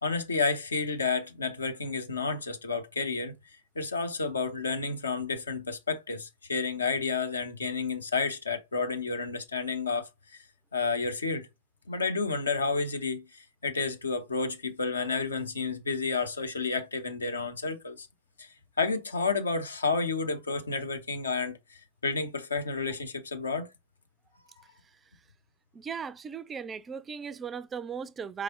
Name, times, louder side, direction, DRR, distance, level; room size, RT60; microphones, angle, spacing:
voice 1, 0.0-3.3 3.8-10.4 10.7-11.5 11.9-18.1 18.4-18.5 18.8-23.7, left 4 dB, 75° left, 0.7 m, -31 dB
voice 2, 25.7-28.4, right 6 dB, 20° right, 0.3 m, -37 dB
4.6 x 3.2 x 2.4 m
figure-of-eight pair, 90°, 0 cm